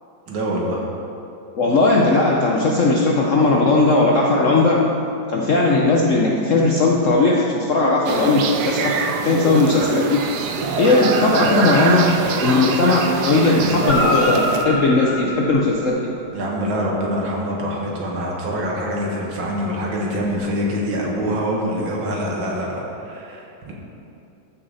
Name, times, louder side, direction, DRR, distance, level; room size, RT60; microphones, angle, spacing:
voice 1, 0.3-0.8 13.6-13.8 16.3-23.7, equal, 85° right, -2 dB, 2.3 m, -25 dB
voice 2, 1.5-4.9 5.3-10.3 10.8-16.2, left 2 dB, 65° left, -2 dB, 0.7 m, -17 dB
sound 1, 8.1-14.7, right 5 dB, 65° right, 1.1 m, -24 dB
Guitar, 13.8-16.4 20.2-20.3, left 1 dB, 35° left, 1.2 m, -26 dB
14.0 x 6.4 x 4.0 m, 2.8 s
omnidirectional pair, 2.1 m